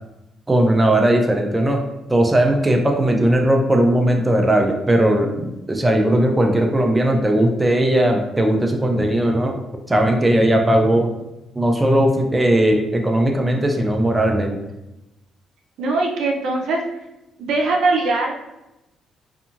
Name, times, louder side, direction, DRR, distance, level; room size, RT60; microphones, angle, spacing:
voice 1, 0.5-1.8 2.1-9.5 9.9-11.1 11.5-14.6, right 1 dB, 15° right, 2 dB, 0.4 m, -18 dB
voice 2, 15.8-16.8 17.4-18.3, right 3 dB, 80° right, 0 dB, 0.5 m, -20 dB
2.6 x 2.4 x 2.8 m, 0.94 s
cardioid pair, 90°, 0 cm